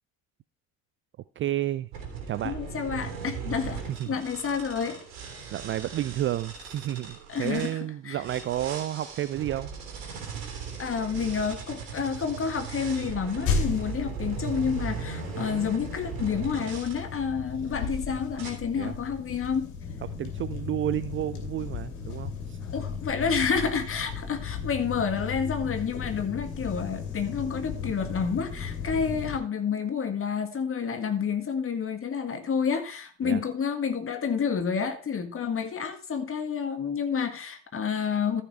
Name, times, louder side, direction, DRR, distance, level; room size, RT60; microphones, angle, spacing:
voice 1, 1.4-1.9 2.3-2.6 3.9-4.1 5.5-9.7 18.8-18.9 20.2-22.6 33.2-33.4, right 13 dB, 30° right, 0.4 m, -31 dB
sound 1, 1.9-7.7 8.2-17.0 17.6-18.0 18.4-18.5, right 6 dB, 60° right, 3.1 m, -38 dB
voice 2, 2.4-5.0 7.3-7.7 8.1-8.2 10.8-19.7 22.7-38.4, left 6 dB, 30° left, 1.9 m, -29 dB
sound 2, 13.5-29.4, left 5 dB, 60° left, 2.8 m, -35 dB
14.0 x 5.8 x 4.4 m
figure-of-eight pair, 55°, 40 cm